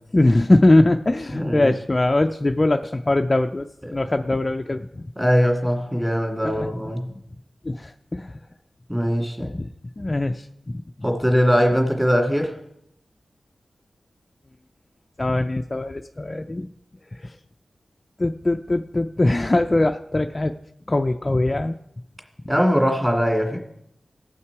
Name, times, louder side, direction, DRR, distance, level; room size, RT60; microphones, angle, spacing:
voice 1, 0.1-3.7 3.9-5.0 6.4-6.7 7.6-8.3 9.4-9.7 10.0-10.5 10.7-10.8 15.2-16.7 17.2-17.3 18.2-20.5 20.9-21.8, left 2 dB, 30° left, 6 dB, 0.4 m, -21 dB
voice 2, 1.3-1.7 5.2-7.1 8.9-9.5 11.0-12.5 22.5-23.6, equal, 10° right, 2 dB, 2.2 m, -21 dB
16.5 x 5.8 x 4.7 m, 0.77 s
wide cardioid pair, 80°, 0 cm